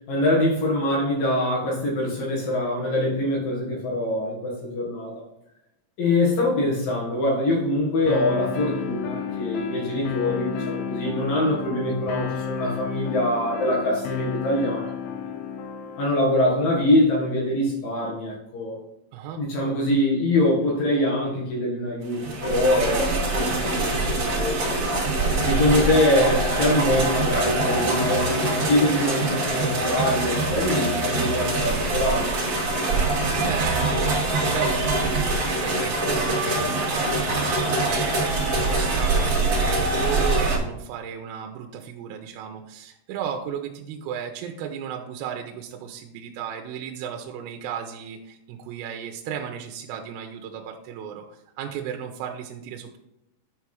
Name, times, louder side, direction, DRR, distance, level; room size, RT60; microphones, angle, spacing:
voice 1, 0.1-5.1 6.0-15.1 16.0-18.8 19.4-24.6 25.4-32.3, left 1 dB, 55° left, -3 dB, 2.7 m, -24 dB
sound 1, 8.1-16.1, left 7 dB, 80° left, 2.5 m, -32 dB
sound 2, 22.1-40.6, right 2 dB, 35° right, 2.9 m, -24 dB
voice 2, 33.0-34.1 34.4-53.0, right 8 dB, 90° right, 3 dB, 3.4 m, -35 dB
9.8 x 4.8 x 4.5 m, 0.85 s
omnidirectional pair, 6.0 m